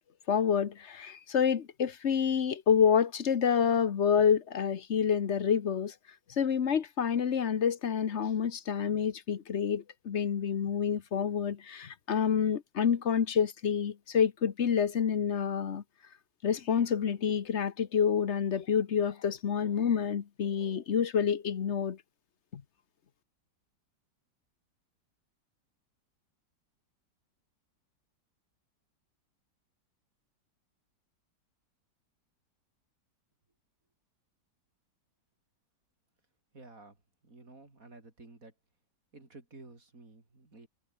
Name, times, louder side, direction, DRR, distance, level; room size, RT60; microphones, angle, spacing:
voice 1, 0.3-5.9 6.3-15.8 16.4-22.0 22.5-22.6, left 7 dB, 45° left, 1.2 m, -28 dB
voice 2, 36.5-37.0 37.2-38.5 39.1-40.7, right 2 dB, 50° right, 4.8 m, -52 dB
omnidirectional pair, 1.9 m